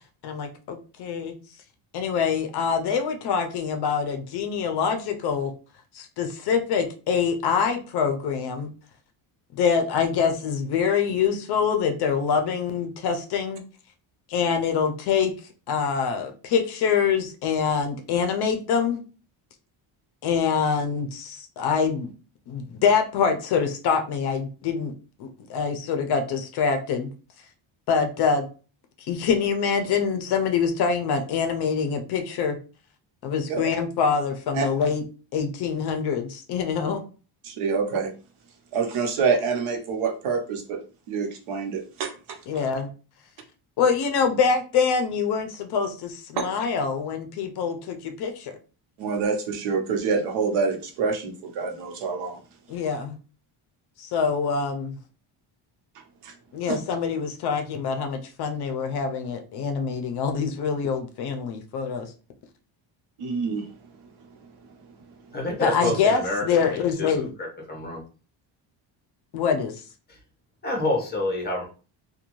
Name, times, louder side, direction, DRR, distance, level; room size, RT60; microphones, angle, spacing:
voice 1, 0.2-1.4 1.9-5.5 5.9-8.7 9.5-13.6 14.3-15.3 15.7-19.0 20.2-22.1 22.5-24.9 25.2-27.1 27.9-28.5 29.1-32.6 33.2-35.0 35.3-37.0 42.5-42.9 43.8-48.5 52.7-53.2 54.0-55.0 56.5-62.1 65.6-67.3 69.3-69.8, left 6 dB, 55° left, 6 dB, 0.5 m, -25 dB
voice 2, 37.4-38.1 38.7-40.8 41.1-42.1 49.0-52.4 56.2-56.3 56.7-56.8 63.2-63.7, right 5 dB, 85° right, 3 dB, 0.9 m, -26 dB
voice 3, 65.3-68.0 70.1-70.2 70.6-71.7, left 2 dB, 20° left, 0 dB, 0.8 m, -28 dB
2.6 x 2.3 x 2.9 m, 0.36 s
cardioid pair, 170°, 49 cm